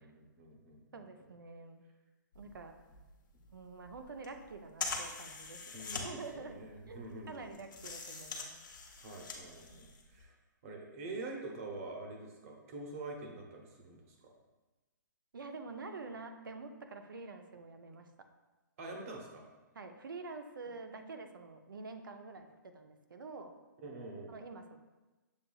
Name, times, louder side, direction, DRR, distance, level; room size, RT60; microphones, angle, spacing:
voice 1, 0.0-1.0 5.7-7.5 8.9-10.3 10.6-14.3 18.8-19.4 23.8-24.3, right 2 dB, 45° right, 1 dB, 0.9 m, -46 dB
voice 2, 0.9-1.8 2.3-2.7 3.5-5.8 6.0-8.5 9.7-9.9 15.3-18.1 19.7-23.5 24.3-24.8, right 3 dB, 90° right, 6 dB, 0.5 m, -47 dB
sound 1, 2.3-10.2, left 4 dB, 70° left, 0.9 m, -44 dB
7.1 x 2.7 x 2.3 m, 1.2 s
hypercardioid pair, 150°, 11 cm